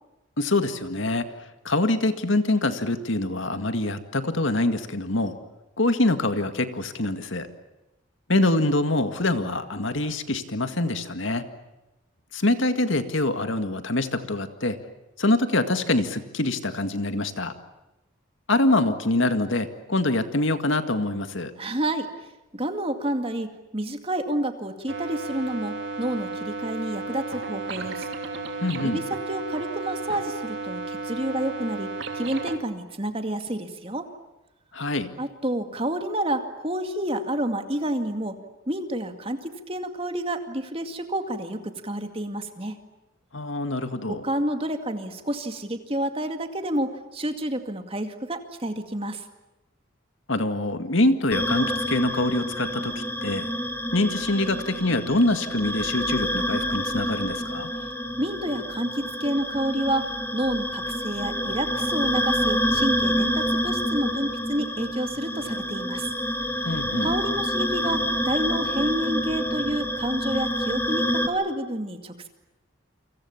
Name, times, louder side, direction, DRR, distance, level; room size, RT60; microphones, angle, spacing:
voice 1, 0.4-5.4 5.8-7.5 8.3-11.5 12.3-14.8 15.2-17.5 18.5-21.5 28.6-29.0 34.7-35.1 43.3-44.2 50.3-53.5 53.9-57.7 66.6-67.1, left 2 dB, 65° left, 9 dB, 2.0 m, -25 dB
voice 2, 21.6-22.1 22.5-28.1 28.8-31.9 32.1-34.1 35.2-38.4 38.7-42.8 44.1-49.2 58.2-66.1 67.0-72.3, right 1 dB, 25° right, 6 dB, 2.2 m, -29 dB
sound 1, 24.9-32.6, right 3 dB, 60° right, 3.1 m, -33 dB
sound 2, 51.3-71.3, equal, 10° left, 2.3 m, -28 dB
29.0 x 25.5 x 7.2 m, 1.0 s
head